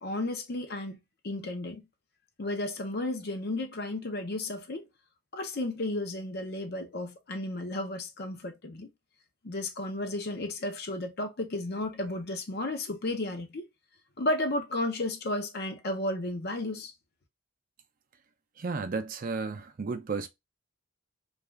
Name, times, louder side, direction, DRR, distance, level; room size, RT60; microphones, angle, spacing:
voice 1, 0.0-1.8 2.4-4.9 5.3-8.9 9.4-13.7 14.2-16.9, left 1 dB, 55° left, 0.6 m, -33 dB
voice 2, 18.6-20.3, right 4 dB, 45° right, 0.4 m, -33 dB
2.4 x 2.3 x 3.1 m
head